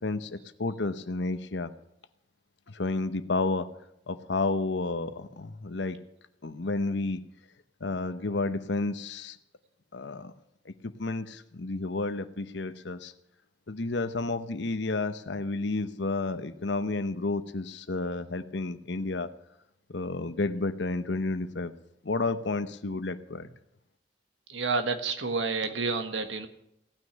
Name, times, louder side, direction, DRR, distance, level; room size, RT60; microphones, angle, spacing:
voice 1, 0.0-1.7 2.7-3.7 4.1-6.0 6.4-7.2 7.8-9.4 9.9-10.3 10.7-13.1 13.7-19.3 19.9-21.7 22.0-23.5, left 3 dB, 70° left, 12 dB, 0.9 m, -31 dB
voice 2, 24.5-26.5, right 4 dB, 85° right, 7 dB, 1.5 m, -29 dB
17.0 x 6.4 x 10.0 m, 0.79 s
head